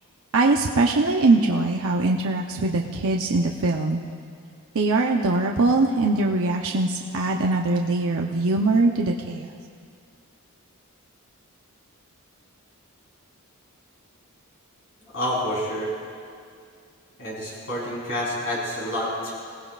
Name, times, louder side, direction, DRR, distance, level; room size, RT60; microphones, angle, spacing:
voice 1, 0.3-4.0 4.7-9.5, right 2 dB, 65° right, 0 dB, 0.8 m, -22 dB
voice 2, 15.1-15.9 17.2-19.3, left 1 dB, 60° left, -6 dB, 4.0 m, -28 dB
25.5 x 17.5 x 2.5 m, 2.3 s
head